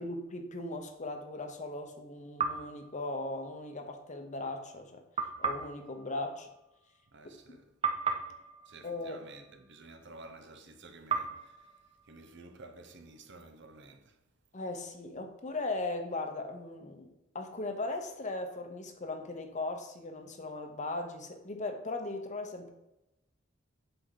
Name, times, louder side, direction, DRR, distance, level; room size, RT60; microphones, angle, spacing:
voice 1, 0.0-5.0 5.4-6.5 7.5-7.6 8.8-9.2 14.5-22.7, left 2 dB, 40° left, 1.0 m, -38 dB
sound 1, 2.4-3.8 5.2-7.5 7.8-10.1 11.1-13.0, right 5 dB, 30° right, 0.8 m, -38 dB
voice 2, 7.1-7.7 8.6-11.8 12.0-14.2, right 2 dB, 65° right, 1.0 m, -52 dB
7.9 x 6.1 x 4.0 m
head